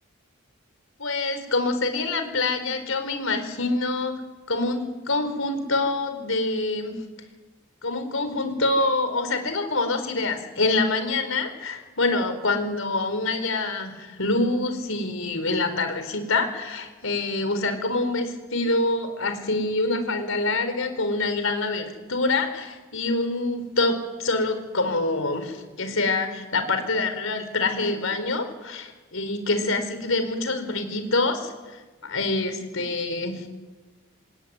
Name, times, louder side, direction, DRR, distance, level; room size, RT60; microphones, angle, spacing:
voice 1, 1.0-4.1 4.5-7.0 7.8-31.5 32.0-33.5, left 2 dB, 75° left, 8 dB, 4.4 m, -26 dB
27.0 x 21.0 x 9.5 m, 1.3 s
head